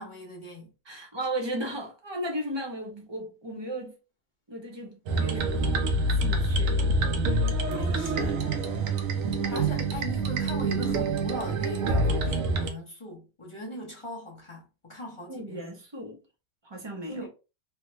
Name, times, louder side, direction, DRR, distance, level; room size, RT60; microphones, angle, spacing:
voice 1, 0.0-1.1 7.7-8.4 8.8-9.0 9.5-15.6 17.1-17.3, equal, 25° left, 0.7 m, -40 dB
voice 2, 0.8-3.9 4.5-5.8 6.2-6.8 9.8-9.9 15.3-16.2 16.6-17.3, right 1 dB, 30° right, 0.5 m, -35 dB
sound 1, 5.1-12.7, right 2 dB, 70° right, 1.0 m, -26 dB
3.3 x 2.2 x 3.0 m
omnidirectional pair, 1.5 m